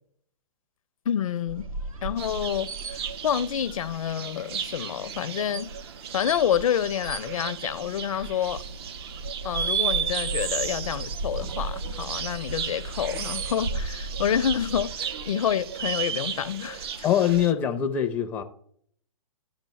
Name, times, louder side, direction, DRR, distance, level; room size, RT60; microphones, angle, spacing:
voice 1, 1.1-1.6 2.0-5.7 6.1-8.6 9.4-16.9, left 9 dB, 70° left, 0.5 m, -28 dB
sound 1, 1.5-17.4, right 2 dB, 75° right, 1.0 m, -38 dB
sound 2, 2.2-17.5, right 8 dB, 45° right, 0.5 m, -34 dB
voice 2, 17.0-18.4, left 9 dB, 10° left, 0.4 m, -23 dB
12.0 x 5.1 x 3.1 m
hypercardioid pair, 140°, 18 cm